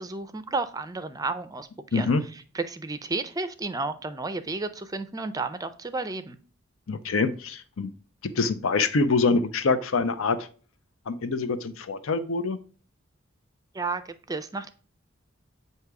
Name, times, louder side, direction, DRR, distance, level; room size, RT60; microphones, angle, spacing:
voice 1, 0.0-6.4 13.7-14.7, right 3 dB, 20° right, 11 dB, 0.4 m, -32 dB
voice 2, 1.9-2.2 6.9-7.9 8.3-10.5 11.1-12.6, left 4 dB, 75° left, 10 dB, 0.6 m, -25 dB
7.8 x 2.8 x 4.7 m, 0.39 s
head